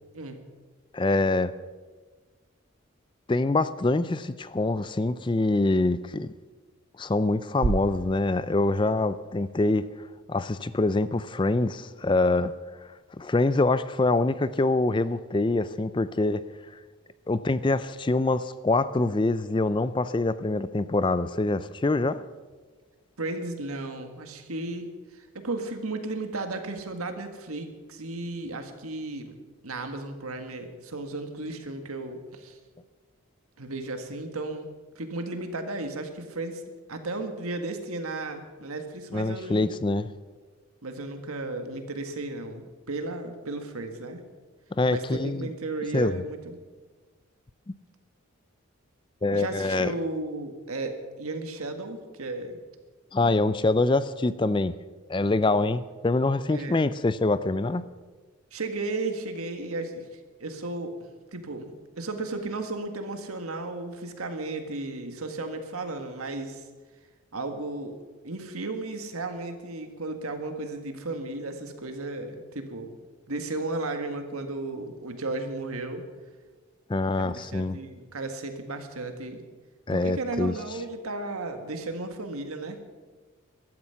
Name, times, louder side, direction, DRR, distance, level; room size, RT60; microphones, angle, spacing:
voice 1, 0.9-1.5 3.3-6.3 7.0-9.9 10.3-12.5 13.2-16.4 17.3-22.2 39.1-40.1 44.7-45.5 45.9-46.2 49.2-49.9 53.1-54.7 55.1-57.8 76.9-77.8 79.9-80.5, left 2 dB, 20° left, 15 dB, 0.4 m, -25 dB
sound 1, 7.6-9.7, right 4 dB, 70° right, 0.5 m, -33 dB
voice 2, 23.2-29.4 29.6-32.6 33.6-36.6 36.9-39.7 40.8-44.2 44.9-46.6 49.3-52.6 55.3-55.7 56.5-56.9 58.5-60.1 60.4-61.0 61.3-66.6 67.3-68.0 68.2-72.9 73.3-76.1 77.2-79.4 79.9-82.8, right 2 dB, 90° right, 6 dB, 1.8 m, -34 dB
15.0 x 12.5 x 5.8 m, 1.4 s
head